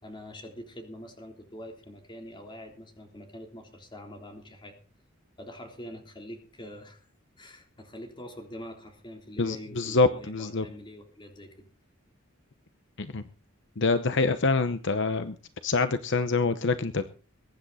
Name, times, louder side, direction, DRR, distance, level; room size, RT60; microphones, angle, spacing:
voice 1, 0.0-4.8 5.4-7.1 7.4-11.7, left 1 dB, 25° left, 4 dB, 3.5 m, -44 dB
voice 2, 9.4-10.7 13.0-13.2 13.8-15.4 15.6-17.0, left 3 dB, 60° left, 11 dB, 0.9 m, -25 dB
22.0 x 10.5 x 4.2 m, 0.37 s
head